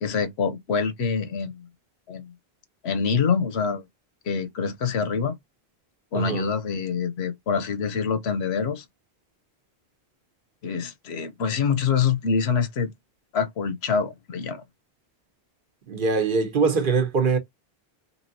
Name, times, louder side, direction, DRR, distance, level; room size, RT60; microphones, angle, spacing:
voice 1, 0.0-1.7 2.1-2.3 2.8-3.8 4.2-5.3 6.1-8.8 10.6-12.9 13.3-14.6, left 6 dB, 90° left, 1.0 m, -25 dB
voice 2, 6.1-6.4 15.9-17.4, right 4 dB, 60° right, 0.9 m, -22 dB
3.1 x 2.7 x 2.6 m
omnidirectional pair, 1.1 m